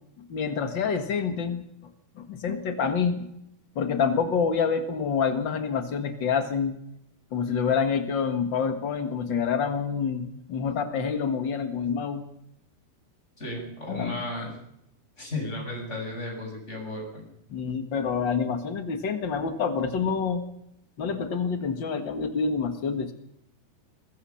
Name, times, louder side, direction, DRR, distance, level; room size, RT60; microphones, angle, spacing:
voice 1, 0.3-1.6 2.2-3.3 3.7-6.8 7.3-12.2 13.9-14.2 17.5-20.4 21.0-23.1, left 6 dB, 85° left, 7 dB, 1.0 m, -27 dB
voice 2, 13.4-14.5 15.2-17.2, left 1 dB, 15° left, 1 dB, 7.6 m, -34 dB
22.5 x 21.5 x 5.7 m, 0.77 s
omnidirectional pair, 4.9 m